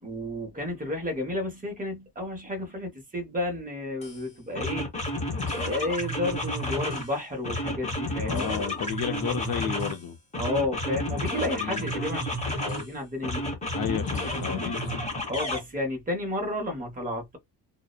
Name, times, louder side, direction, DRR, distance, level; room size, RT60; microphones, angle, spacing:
voice 1, 0.0-4.9 5.5-8.6 10.4-13.8 15.3-17.4, left 1 dB, 20° right, 0.8 m, -32 dB
sound 1, 4.0-4.2 4.5-7.1 7.4-10.0 10.3-12.9 13.2-15.6, left 1 dB, 15° left, 0.8 m, -31 dB
voice 2, 8.3-10.2 11.6-11.9 13.7-15.0, left 8 dB, 60° left, 0.5 m, -32 dB
2.7 x 2.0 x 2.3 m
wide cardioid pair, 165°, 41 cm